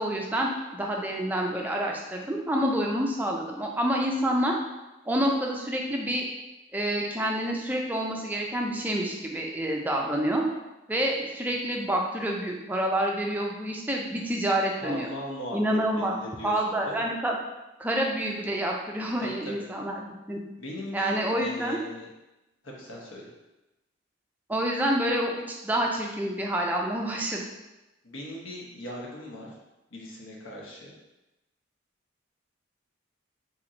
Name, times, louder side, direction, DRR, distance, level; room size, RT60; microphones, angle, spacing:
voice 1, 0.0-4.6 5.1-6.3 6.7-10.4 10.9-15.1 15.5-16.1 16.4-17.4 17.8-20.4 20.9-21.8 24.5-27.4, right 1 dB, 10° right, 0 dB, 0.3 m, -28 dB
voice 2, 14.8-17.0 19.2-19.5 20.6-22.1 22.6-23.3 28.0-29.5 29.9-30.9, left 1 dB, 75° left, -3 dB, 0.9 m, -39 dB
4.1 x 2.9 x 2.5 m, 1.0 s
head